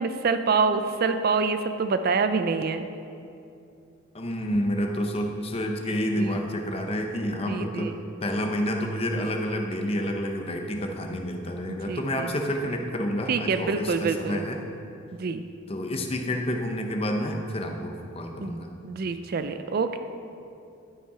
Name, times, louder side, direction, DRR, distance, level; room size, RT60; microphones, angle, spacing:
voice 1, 0.0-2.9 6.2-6.3 7.5-8.0 11.7-12.3 13.3-14.5 15.1-15.4 18.4-18.6 18.8-20.0, right 4 dB, 45° right, 9 dB, 0.3 m, -26 dB
voice 2, 4.1-7.9 8.2-14.6 15.7-18.7, equal, 25° left, 3 dB, 0.7 m, -29 dB
12.0 x 5.5 x 4.8 m, 2.6 s
head